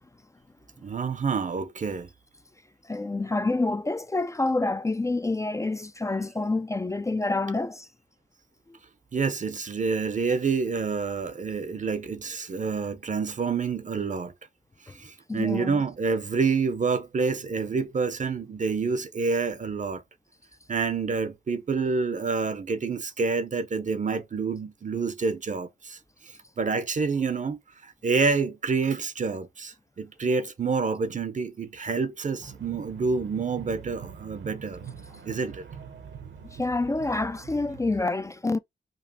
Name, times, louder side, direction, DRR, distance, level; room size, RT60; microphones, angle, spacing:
voice 1, 0.8-2.1 9.1-14.3 15.0-20.0 20.7-26.0 26.6-34.8 35.3-36.2 36.5-36.6, right 4 dB, 40° right, 0.6 m, -28 dB
voice 2, 2.9-7.9 8.7-8.8 15.3-15.8 36.5-38.6, left 2 dB, 15° left, 0.3 m, -27 dB
sound 1, 32.4-38.0, right 6 dB, 70° right, 0.9 m, -44 dB
5.3 x 2.4 x 2.6 m
cardioid pair, 70°, 20 cm